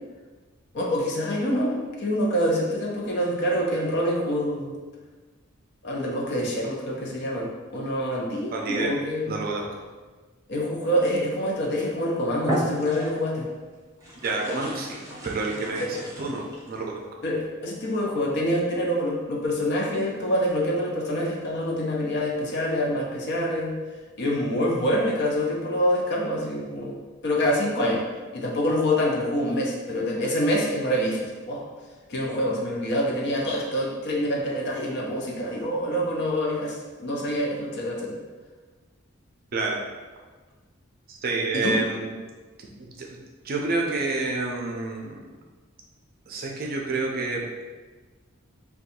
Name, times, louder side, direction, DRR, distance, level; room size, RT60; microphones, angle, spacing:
voice 1, 0.7-4.7 5.8-9.4 10.5-13.5 15.8-15.9 17.2-23.7 24.2-27.0 27.2-28.0 28.3-31.7 32.1-38.2 41.5-41.8, equal, 55° left, -1 dB, 0.6 m, -26 dB
voice 2, 8.5-8.9 9.3-9.6 14.2-15.9 16.2-16.4 16.7-17.0 39.5-39.8 41.1-42.1 42.8-43.2 43.4-45.2 46.3-47.4, right 3 dB, 45° right, 0 dB, 0.5 m, -28 dB
sound 1, 11.8-12.0 12.4-13.4 14.0-16.8, right 1 dB, 15° right, 0.8 m, -33 dB
2.6 x 2.3 x 4.1 m, 1.3 s
head